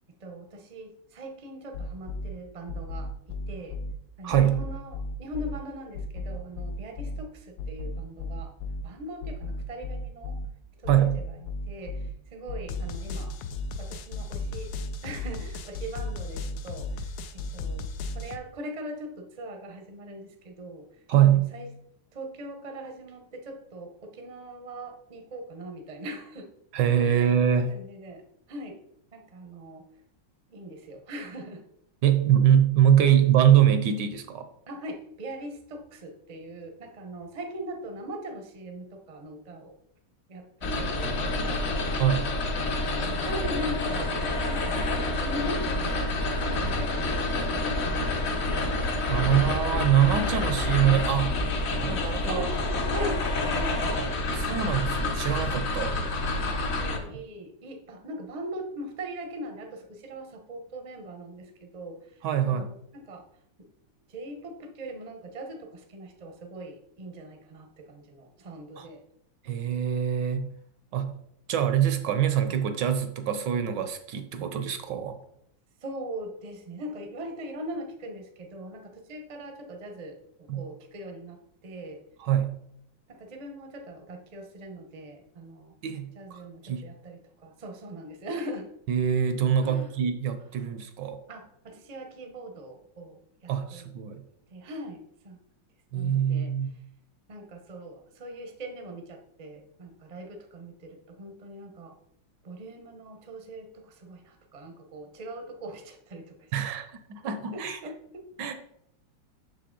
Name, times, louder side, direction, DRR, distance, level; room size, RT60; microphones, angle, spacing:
voice 1, 0.2-3.8 4.2-8.5 8.8-10.4 10.8-13.3 13.8-14.7 15.0-20.9 21.2-21.7 22.1-26.5 26.8-27.4 27.7-28.2 28.5-28.8 29.1-29.8 30.5-31.6 34.7-39.7 40.3-41.7 43.0-48.7 52.3-52.6 52.9-53.2 53.5-54.5 56.6-63.2 63.6-63.7 64.1-69.0 75.8-82.0 83.1-85.8 86.2-88.7 89.6-89.9 91.3-93.9 94.5-95.4 95.9-96.5 97.3-101.9 102.4-106.5 107.2-108.2, right 1 dB, 40° right, 4 dB, 0.5 m, -41 dB
sound 1, 1.7-2.3 2.7-3.9 4.3-5.6 5.9-7.2 7.6-8.8 9.2-10.5 10.8-12.1 12.5-18.4, left 2 dB, 75° left, 1.3 m, -34 dB
voice 2, 4.2-4.7 10.9-11.2 21.1-21.5 26.7-27.7 32.0-34.5 42.0-42.3 49.1-51.4 51.8-52.5 54.0-54.1 54.3-56.0 62.2-62.7 68.8-68.9 69.4-70.5 70.9-71.2 71.5-75.2 80.5-80.6 82.2-82.6 85.8-86.8 88.9-91.2 93.5-94.2 95.9-96.7 106.5-107.8 108.4-108.5, right 9 dB, 75° right, 8 dB, 1.2 m, -24 dB
sound 2, 40.6-57.0, left 2 dB, 50° left, 0.8 m, -28 dB
6.5 x 5.6 x 3.8 m, 0.73 s
omnidirectional pair, 2.1 m